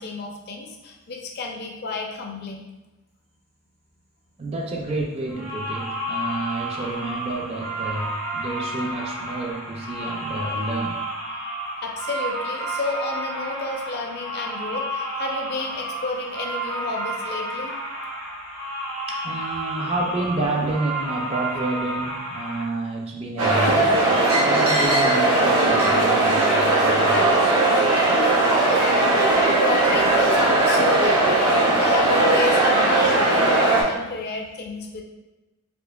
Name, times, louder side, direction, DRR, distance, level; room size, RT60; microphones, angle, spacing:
voice 1, 0.0-2.7 11.8-17.7 29.6-31.5 31.8-35.0, left 3 dB, 45° left, 1 dB, 0.5 m, -30 dB
voice 2, 4.4-11.0 19.1-24.0 24.4-27.2, right 2 dB, 25° right, 0 dB, 0.4 m, -29 dB
sound 1, 5.3-22.6, right 1 dB, 90° left, 1.1 m, -31 dB
sound 2, 23.4-33.8, right 2 dB, 85° right, 0.9 m, -18 dB
4.3 x 2.8 x 2.3 m, 1.1 s
head